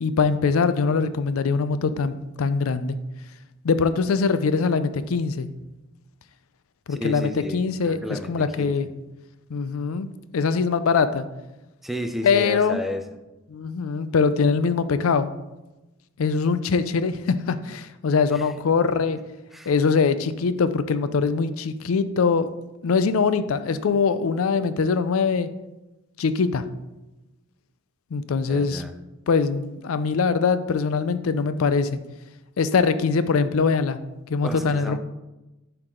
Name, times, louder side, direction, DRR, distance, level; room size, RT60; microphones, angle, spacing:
voice 1, 0.0-3.0 3.6-5.5 6.9-8.9 9.5-10.1 10.3-11.3 12.2-12.8 13.5-15.3 16.2-19.2 19.7-22.5 22.8-25.5 26.2-26.6 28.1-28.8 29.3-32.0 32.6-34.0 34.3-35.0, left 5 dB, 80° left, 13 dB, 0.4 m, -22 dB
voice 2, 6.9-8.7 11.8-13.0 18.3-18.5 18.8-18.9 19.5-19.7 28.5-29.0 34.4-35.0, left 1 dB, ahead, 6 dB, 0.5 m, -32 dB
7.6 x 4.7 x 3.8 m, 1.0 s
head